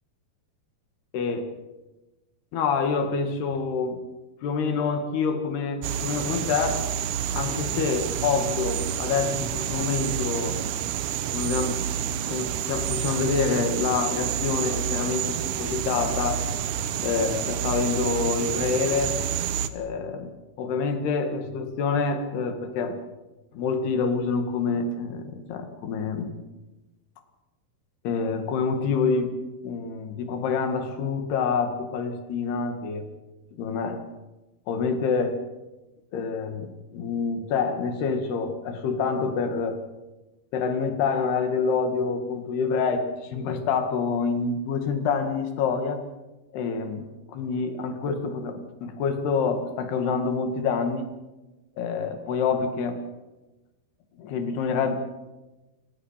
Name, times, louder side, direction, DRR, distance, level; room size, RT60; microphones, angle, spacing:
voice 1, 1.1-1.5 2.5-4.0 4.4-6.9 7.3-10.6 11.3-11.8 12.3-16.5 17.0-19.2 19.7-23.0 23.5-26.4 28.0-29.3 29.6-33.1 33.6-34.0 34.7-35.4 36.1-39.8 40.5-46.0 46.5-51.1 51.8-53.1 54.2-55.0, left 5 dB, 80° left, 6 dB, 4.0 m, -27 dB
sound 1, 5.8-19.7, right 9 dB, 70° right, 2.1 m, -29 dB
29.0 x 17.5 x 5.8 m, 1.1 s
omnidirectional pair, 4.6 m